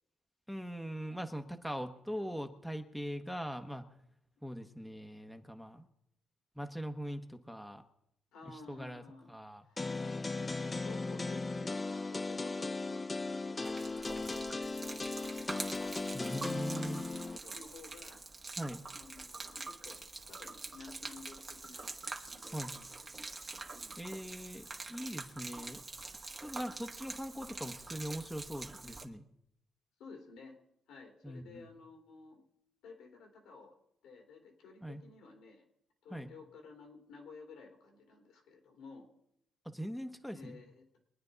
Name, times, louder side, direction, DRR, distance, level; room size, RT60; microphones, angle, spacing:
voice 1, 0.5-3.9 4.4-5.9 6.6-7.8 8.5-9.0 9.3-9.6 16.1-17.1 18.6-18.8 22.5-22.7 24.0-25.8 26.4-29.2 31.2-31.7 34.8-35.0 36.1-36.3 39.6-40.6, equal, ahead, 5 dB, 1.1 m, -41 dB
voice 2, 8.3-9.3 9.6-9.8 10.7-15.6 15.9-16.2 16.7-18.2 18.9-21.9 22.2-22.9 23.2-23.4 23.7-24.0 30.0-30.6 30.9-32.4 32.8-33.7 34.0-35.7 36.0-39.1 40.3-40.8, left 4 dB, 85° left, 3 dB, 2.6 m, -54 dB
sound 1, 9.8-17.4, left 3 dB, 25° left, 0.4 m, -37 dB
Gurgling / Liquid, 13.6-29.0, right 3 dB, 30° right, 1.3 m, -45 dB
23.0 x 9.5 x 4.0 m, 0.77 s
cardioid pair, 90°, 0 cm